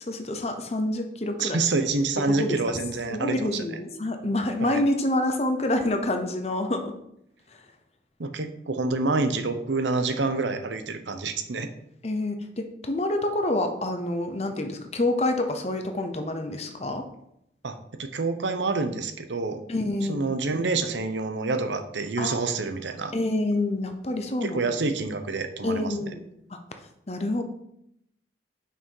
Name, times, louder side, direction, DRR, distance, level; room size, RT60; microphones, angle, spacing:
voice 1, 0.1-1.6 2.3-2.6 3.1-6.9 12.0-17.0 19.7-20.3 22.2-22.4 23.1-24.7 25.6-26.2 27.1-27.4, left 1 dB, 35° left, 5 dB, 0.8 m, -27 dB
voice 2, 1.4-3.7 4.6-4.8 8.2-11.7 17.6-19.6 20.1-23.1 24.4-25.9, right 3 dB, 85° right, 8 dB, 0.8 m, -27 dB
5.8 x 5.6 x 4.7 m, 0.76 s
head